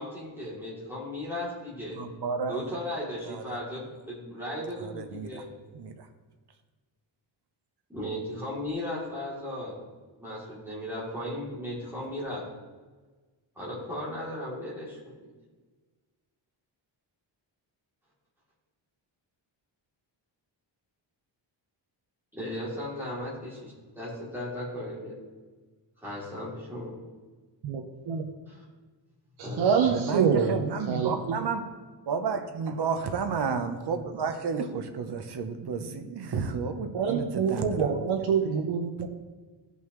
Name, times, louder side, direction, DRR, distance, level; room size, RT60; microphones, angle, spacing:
voice 1, 0.0-2.0 2.5-5.5 7.9-9.7 10.2-12.4 13.6-15.0 22.3-25.1 26.0-27.0 28.5-28.6 29.4-30.0, left 1 dB, 5° right, -8 dB, 3.0 m, -36 dB
voice 2, 1.9-2.8 3.2-3.6 4.8-5.4 5.7-6.1 29.9-31.6 32.1-38.1, right 5 dB, 55° right, 7 dB, 0.9 m, -31 dB
voice 3, 29.4-31.4 36.9-39.1, right 6 dB, 80° right, 1 dB, 1.0 m, -26 dB
15.5 x 5.5 x 3.2 m, 1.3 s
wide cardioid pair, 165°, 47 cm